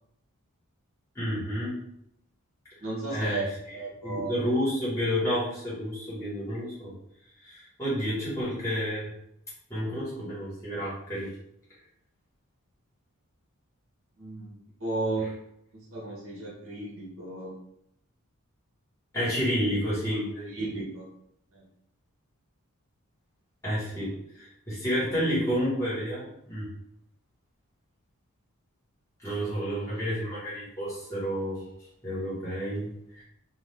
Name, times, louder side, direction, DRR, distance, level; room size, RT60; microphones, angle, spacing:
voice 1, 1.1-1.8 3.1-3.4 4.0-6.9 7.4-9.1 9.7-11.3 15.2-15.3 19.1-20.5 23.6-26.7 29.2-31.6 32.0-33.2, equal, 15° left, -10 dB, 1.4 m, -30 dB
voice 2, 2.8-3.5 3.7-4.4 14.2-15.3 15.7-17.5 20.5-21.0 21.5-21.6, right 2 dB, 60° right, -5 dB, 1.0 m, -34 dB
2.6 x 2.4 x 3.3 m, 0.77 s
head